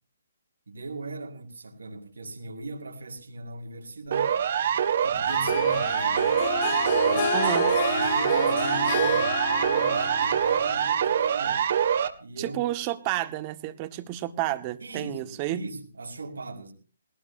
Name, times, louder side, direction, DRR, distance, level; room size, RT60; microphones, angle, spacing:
voice 1, 0.7-4.5 5.0-6.4 7.0-7.5 7.9-11.7 12.2-12.6 14.8-16.7, right 3 dB, 80° right, 5.4 m, -39 dB
Siren, 4.1-12.1, right 8 dB, 55° right, 2.6 m, -24 dB
Harp, 5.3-11.1, left 5 dB, 45° left, 4.2 m, -30 dB
voice 2, 7.3-7.7 12.4-15.6, right 15 dB, 30° right, 2.0 m, -30 dB
20.0 x 19.5 x 2.8 m
hypercardioid pair, 145°, 0 cm